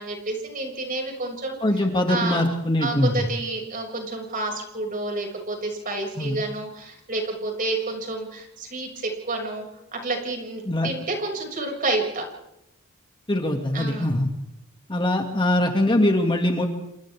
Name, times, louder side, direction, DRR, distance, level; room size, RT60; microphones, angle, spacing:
voice 1, 0.0-1.6 2.1-2.4 2.8-9.7 9.9-12.2 13.7-14.2, right 2 dB, 40° right, 2 dB, 6.7 m, -29 dB
voice 2, 1.6-3.2 6.2-6.4 10.7-10.9 13.3-14.3 14.9-16.7, left 1 dB, 25° left, 3 dB, 2.4 m, -22 dB
29.0 x 27.5 x 3.7 m, 0.89 s
head